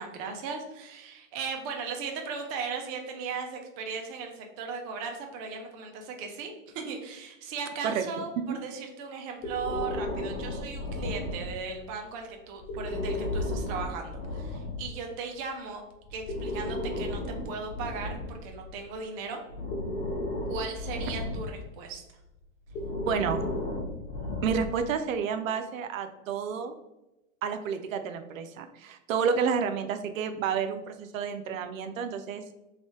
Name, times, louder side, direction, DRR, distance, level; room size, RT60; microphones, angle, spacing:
voice 1, 0.0-15.8 16.1-19.4 20.5-22.0, right 5 dB, 30° right, 3 dB, 0.5 m, -37 dB
Breathing, 9.4-11.8 12.6-14.9 16.0-18.9 19.5-21.7 22.7-25.0, left 1 dB, 50° left, 1.3 m, -34 dB
voice 2, 23.0-23.5 24.4-26.8 27.4-32.4, right 6 dB, 85° right, 8 dB, 0.6 m, -30 dB
3.1 x 3.1 x 3.0 m, 0.93 s
hypercardioid pair, 140°, 39 cm